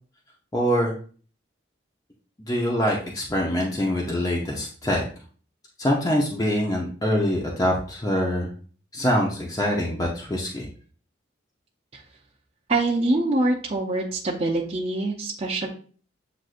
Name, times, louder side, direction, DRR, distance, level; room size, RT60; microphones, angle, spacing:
voice 1, 0.5-0.9 2.4-5.0 5.8-8.5 8.9-10.7, equal, 20° left, -2 dB, 0.7 m, -24 dB
voice 2, 12.7-15.7, right 2 dB, 30° right, -3 dB, 0.6 m, -24 dB
7.7 x 2.6 x 2.4 m, 0.42 s
head